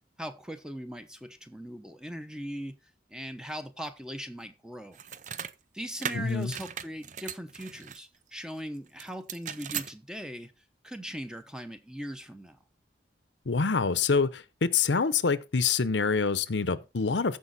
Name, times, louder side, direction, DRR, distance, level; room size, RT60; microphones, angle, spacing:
voice 1, 0.2-2.8 3.1-5.0 5.7-10.5 10.8-12.6, equal, 5° right, 0.8 m, -39 dB
sound 1, 4.9-5.5 6.0-8.0 9.0-9.9, right 8 dB, 40° right, 0.5 m, -37 dB
voice 2, 6.1-6.5 13.5-17.4, left 5 dB, 80° left, 0.8 m, -26 dB
14.0 x 5.2 x 4.1 m
head